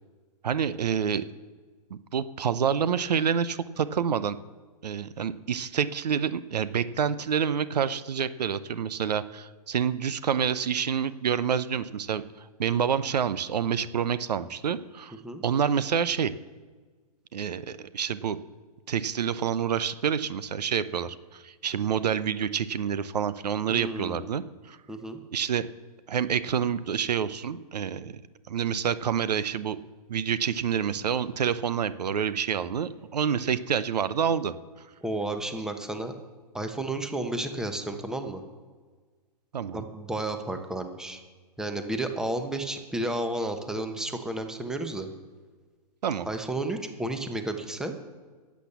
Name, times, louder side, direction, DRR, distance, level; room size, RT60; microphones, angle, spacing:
voice 1, 0.4-1.2 2.1-4.4 4.8-15.1 15.4-16.3 17.3-18.4 18.9-24.8 25.3-25.6 26.1-28.2 28.5-29.8 30.1-34.5 39.5-39.8 46.0-46.3, right 7 dB, 80° right, 15 dB, 0.7 m, -28 dB
voice 2, 23.7-24.3 24.9-25.2 35.0-36.1 36.5-38.4 39.7-41.2 41.6-45.1 46.2-47.9, right 1 dB, 5° right, 6 dB, 1.0 m, -32 dB
12.0 x 8.4 x 7.0 m, 1.4 s
hypercardioid pair, 135°, 20 cm